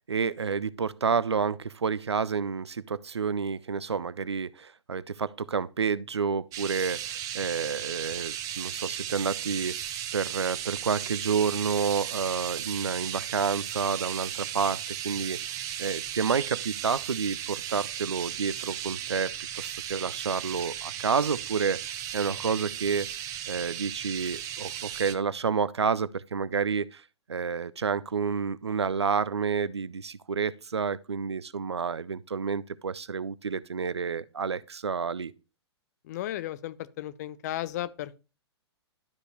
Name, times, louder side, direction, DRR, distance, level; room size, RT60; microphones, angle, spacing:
voice 1, 0.1-9.8 10.1-23.1 23.5-27.0 27.3-35.3, right 6 dB, 75° right, 0.5 m, -29 dB
sound 1, 6.5-25.2, right 11 dB, 25° right, 0.7 m, -36 dB
voice 2, 36.1-38.2, left 13 dB, 40° left, 0.6 m, -34 dB
12.0 x 5.2 x 3.0 m
figure-of-eight pair, 110°, 14 cm